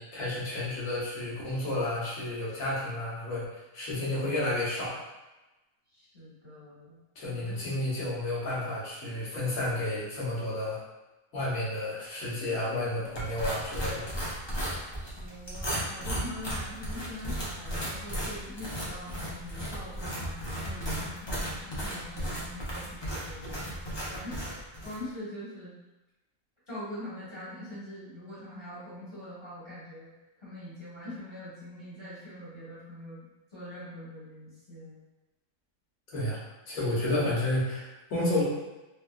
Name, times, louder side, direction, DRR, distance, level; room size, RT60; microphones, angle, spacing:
voice 1, 0.0-5.0 7.1-10.8 11.3-14.1 36.1-36.4 36.7-38.4, left 1 dB, 70° left, -7 dB, 1.4 m, -31 dB
voice 2, 5.9-7.0 7.3-7.5 14.9-25.7 26.7-30.1 30.4-35.0, left 1 dB, 20° left, -11 dB, 1.3 m, -43 dB
sound 1, 13.1-25.0, equal, 40° left, 0.4 m, -35 dB
3.3 x 2.7 x 2.3 m, 1.0 s
omnidirectional pair, 1.5 m